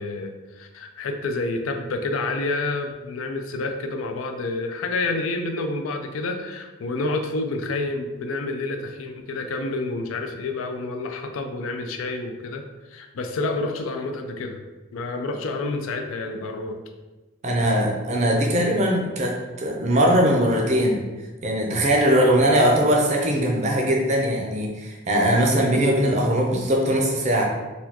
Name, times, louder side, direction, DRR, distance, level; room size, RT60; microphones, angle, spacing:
voice 1, 0.0-14.6 14.9-16.8 22.1-22.5, left 2 dB, 80° left, 5 dB, 0.4 m, -29 dB
voice 2, 17.4-21.0 21.4-27.4, equal, 35° right, 0 dB, 0.5 m, -20 dB
4.1 x 2.2 x 2.8 m, 1.2 s
head